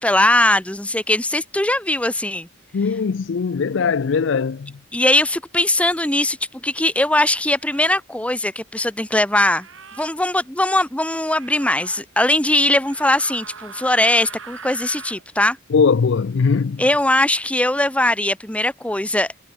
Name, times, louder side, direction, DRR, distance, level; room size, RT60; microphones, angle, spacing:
voice 1, 0.0-2.5 4.9-9.7 10.0-15.6 16.8-19.4, left 1 dB, 5° left, 1.1 m, -20 dB
voice 2, 2.7-4.7 15.7-16.8, left 5 dB, 60° left, 0.4 m, -20 dB
sound 1, 6.2-6.3 7.5-8.0 9.5-10.1 11.3-12.0 12.8-15.2, right 6 dB, 70° right, 3.3 m, -40 dB
head